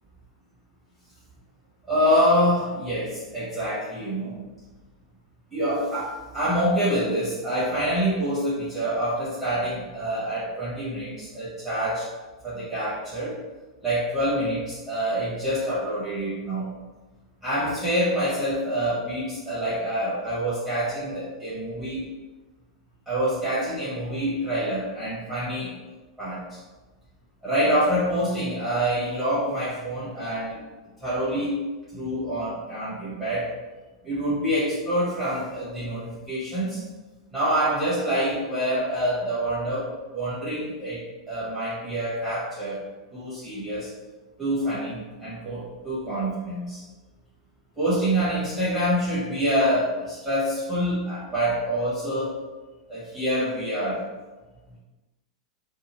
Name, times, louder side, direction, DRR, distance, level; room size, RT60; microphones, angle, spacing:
voice 1, 1.9-4.3 5.5-12.1 12.4-13.4 13.8-16.7 17.4-22.1 23.1-25.7 26.2-26.6 27.4-30.6 31.0-31.6 31.9-33.5 34.0-36.8 37.3-42.8 43.1-43.9 44.4-46.8 47.8-52.4 52.9-54.0, equal, 5° right, -11 dB, 1.2 m, -26 dB
2.6 x 2.5 x 3.1 m, 1.2 s
figure-of-eight pair, 95°, 3 cm